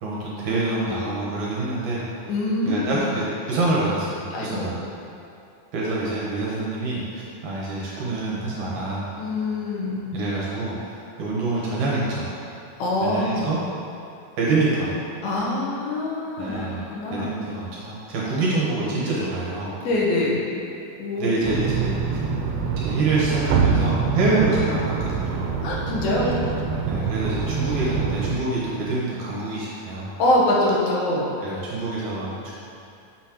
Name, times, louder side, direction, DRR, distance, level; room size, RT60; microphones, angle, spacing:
voice 1, 0.0-2.2 2.7-4.8 5.7-9.0 10.1-12.3 13.0-13.6 14.4-15.0 16.4-19.7 21.2-22.2 22.8-25.5 26.9-30.1 31.4-32.5, right 2 dB, 65° right, -6 dB, 2.2 m, -26 dB
voice 2, 2.3-3.1 4.3-4.7 9.2-10.1 12.8-13.5 15.2-17.3 19.8-20.5 21.0-21.5 25.6-26.4 30.2-31.3, left 1 dB, 80° left, -4 dB, 3.0 m, -24 dB
sound 1, 21.4-28.4, right 5 dB, 90° right, 2.5 m, -25 dB
8.0 x 6.3 x 2.9 m, 2.6 s
omnidirectional pair, 4.2 m